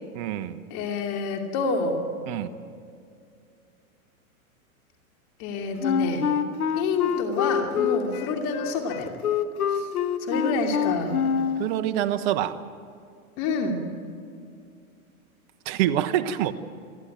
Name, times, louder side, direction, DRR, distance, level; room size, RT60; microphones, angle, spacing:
voice 1, 0.1-0.6 2.3-2.5 11.6-12.6 15.7-16.5, right 11 dB, 45° right, 10 dB, 1.2 m, -25 dB
voice 2, 0.7-2.0 5.4-6.3 6.7-9.1 9.7-9.9 10.3-11.2 13.4-13.8, left 4 dB, 40° left, 3 dB, 2.7 m, -28 dB
Wind instrument woodwind instrument, 5.8-11.7, left 7 dB, 80° left, 1.4 m, -26 dB
28.5 x 11.5 x 9.1 m, 2.4 s
hypercardioid pair, 125°, 43 cm